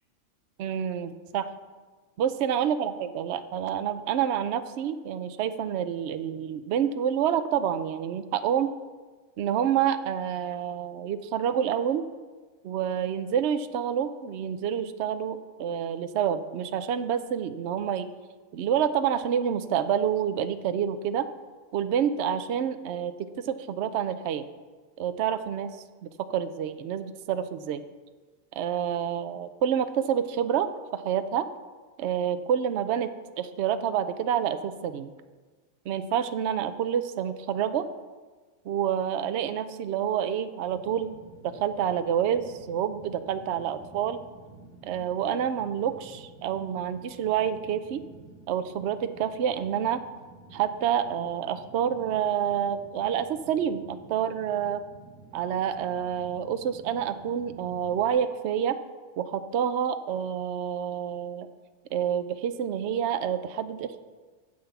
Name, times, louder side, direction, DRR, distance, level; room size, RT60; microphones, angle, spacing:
voice 1, 0.6-1.5 2.2-8.7 9.4-12.0 12.6-18.1 18.5-21.2 21.7-24.4 25.0-25.7 26.2-27.8 28.5-31.5 32.0-33.1 33.4-35.1 35.9-37.9 38.7-41.1 41.4-44.2 44.8-48.0 48.5-50.0 50.5-54.8 55.3-58.8 59.2-61.5 61.9-64.0, right 9 dB, 60° right, 10 dB, 0.8 m, -28 dB
Fire, 40.7-58.1, right 3 dB, 5° left, 2.5 m, -51 dB
8.9 x 8.0 x 7.0 m, 1.4 s
omnidirectional pair, 1.4 m